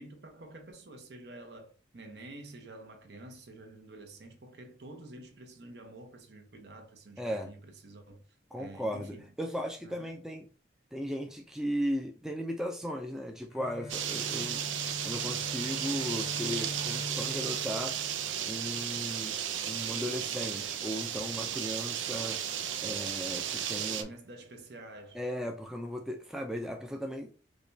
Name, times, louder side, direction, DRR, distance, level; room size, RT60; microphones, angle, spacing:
voice 1, 0.0-8.2 8.6-9.3 9.8-10.1 24.0-25.2, right 2 dB, 65° right, 0.8 m, -49 dB
voice 2, 7.2-7.5 8.5-10.5 10.9-14.6 15.0-18.0 18.5-22.4 22.8-24.1 25.1-27.3, equal, 5° right, 0.3 m, -36 dB
Bowed string instrument, 13.5-18.9, left 1 dB, 75° left, 0.6 m, -43 dB
sound 1, 13.9-24.0, right 9 dB, 90° right, 0.4 m, -34 dB
4.9 x 2.2 x 2.6 m
head